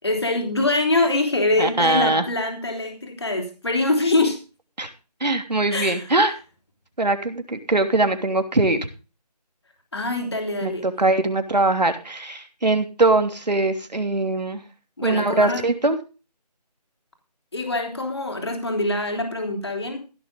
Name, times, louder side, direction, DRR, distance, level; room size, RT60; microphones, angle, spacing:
voice 1, 0.0-4.4 5.7-6.1 9.9-10.8 15.0-15.6 17.5-20.0, left 2 dB, 40° left, 4 dB, 3.3 m, -24 dB
voice 2, 1.6-2.3 4.8-4.9 5.2-6.3 7.0-8.8 10.6-14.6 15.0-16.0, right 2 dB, 80° right, 7 dB, 3.0 m, -21 dB
16.0 x 7.2 x 5.4 m, 0.32 s
figure-of-eight pair, 180°, 21 cm